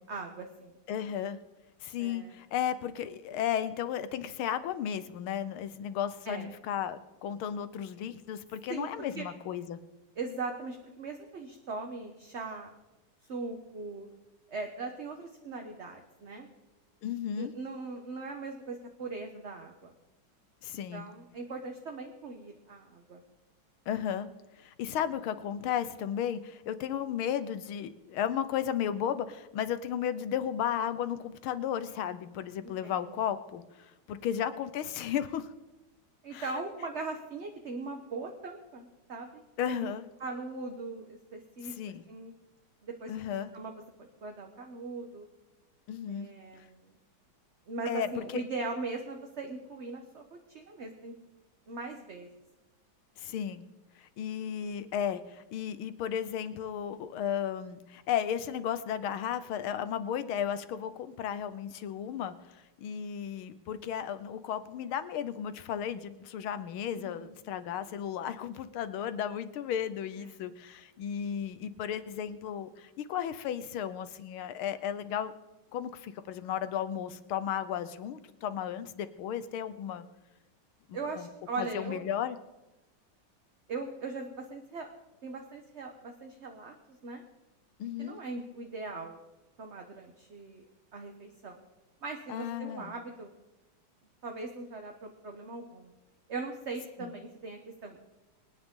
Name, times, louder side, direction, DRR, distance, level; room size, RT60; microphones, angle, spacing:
voice 1, 0.1-0.7 2.0-2.3 6.3-6.5 8.7-9.3 10.2-12.7 13.3-14.1 14.5-16.5 17.4-19.9 20.9-23.2 32.6-33.2 34.1-34.2 36.2-39.4 39.7-41.8 42.1-42.3 42.8-43.7 44.2-45.3 46.1-46.9 47.7-50.2 50.5-51.1 51.7-52.3 66.9-67.3 70.2-70.3 80.9-82.0 83.7-84.9 85.2-87.2 88.0-89.2 89.6-90.6 90.9-91.6 92.0-93.3 94.2-95.9 96.3-98.0, right 3 dB, 40° right, 3 dB, 1.1 m, -40 dB
voice 2, 0.9-1.4 1.8-9.8 17.0-17.5 20.6-21.1 23.9-24.3 24.6-35.5 36.3-36.5 39.6-40.0 41.6-42.0 43.1-43.5 45.9-46.3 46.6-46.7 47.9-48.4 53.2-53.6 54.0-75.3 75.7-80.1 80.9-81.3 81.6-82.4 87.8-88.2 92.3-92.9 97.0-97.1, left 9 dB, 85° left, 13 dB, 1.7 m, -34 dB
24.0 x 9.9 x 3.8 m, 1.0 s
omnidirectional pair, 2.3 m